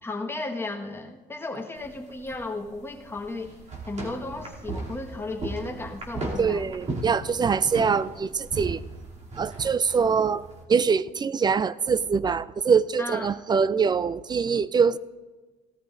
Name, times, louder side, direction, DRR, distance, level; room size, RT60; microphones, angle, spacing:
voice 1, 0.0-3.6 3.9-6.7 13.0-13.3, left 2 dB, 15° left, 1 dB, 1.5 m, -34 dB
sound 1, 1.8-10.6, right 2 dB, 45° right, 2.9 m, -37 dB
voice 2, 6.4-8.8 9.4-15.0, right 6 dB, 25° right, 17 dB, 0.4 m, -24 dB
17.5 x 13.5 x 2.6 m, 1.3 s
cardioid pair, 110°, 17 cm